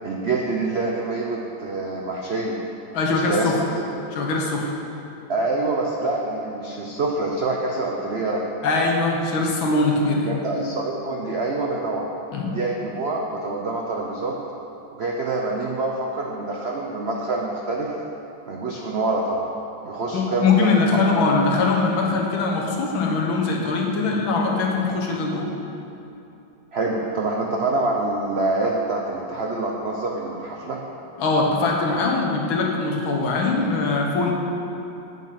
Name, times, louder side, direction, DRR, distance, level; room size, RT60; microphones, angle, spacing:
voice 1, 0.0-2.6 3.1-3.8 5.3-8.4 10.2-12.1 12.5-14.4 14.9-17.9 18.5-19.5 19.8-21.0 26.7-30.8, right 2 dB, 85° right, -1 dB, 0.5 m, -26 dB
voice 2, 2.9-3.6 4.1-4.7 8.6-10.4 12.3-12.5 20.1-25.5 31.2-34.3, left 3 dB, 80° left, -1 dB, 1.9 m, -22 dB
8.5 x 7.0 x 5.8 m, 2.8 s
omnidirectional pair, 2.1 m